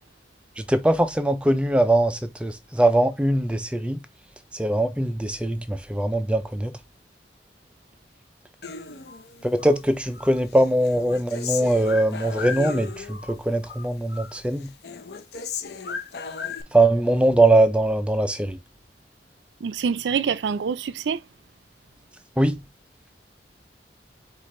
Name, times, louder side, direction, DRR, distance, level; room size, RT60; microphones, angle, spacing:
voice 1, 0.6-4.0 4.5-6.7 9.4-14.7 16.7-18.6 22.4-22.6, right 1 dB, 5° right, 0.4 m, -21 dB
Human voice, 8.6-9.8 10.1-13.3 13.6-14.4 14.6-16.6, left 6 dB, 65° left, 0.6 m, -35 dB
voice 2, 19.6-21.2, right 6 dB, 85° right, 0.4 m, -26 dB
4.7 x 2.5 x 4.3 m
head